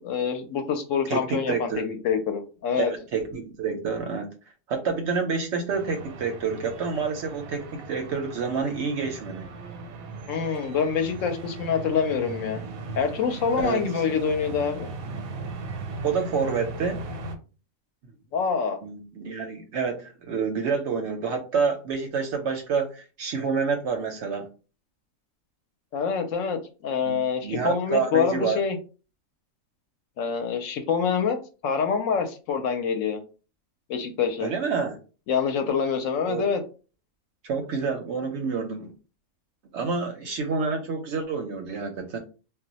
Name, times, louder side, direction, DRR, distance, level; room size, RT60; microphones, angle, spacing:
voice 1, 0.0-2.9 10.3-12.6 13.0-14.9 18.3-18.8 25.9-28.8 30.2-31.4 31.6-33.2 33.9-34.5 35.3-36.6, left 6 dB, 70° left, 7 dB, 0.9 m, -26 dB
voice 2, 1.1-1.8 2.7-4.3 4.7-9.5 13.6-13.9 16.0-17.0 18.8-24.5 27.0-28.6 34.4-35.0 36.3-36.5 37.4-38.9 39.7-42.2, right 5 dB, 65° right, 4 dB, 0.8 m, -28 dB
sound 1, 5.7-17.4, right 2 dB, 85° right, 1.1 m, -38 dB
2.3 x 2.1 x 3.9 m, 0.35 s
omnidirectional pair, 1.5 m